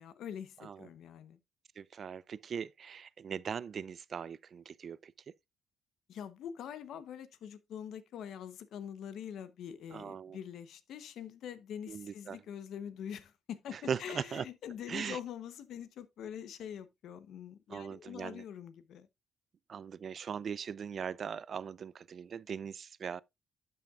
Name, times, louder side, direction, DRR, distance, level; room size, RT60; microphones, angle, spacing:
voice 1, 0.0-1.4 6.1-19.1, left 9 dB, 75° left, 0.8 m, -44 dB
voice 2, 1.8-5.1 9.9-10.4 11.9-12.4 13.7-14.5 14.9-15.2 17.7-18.4 19.7-23.2, right 7 dB, 50° right, 0.4 m, -40 dB
12.0 x 5.7 x 2.4 m
cardioid pair, 90°, 0 cm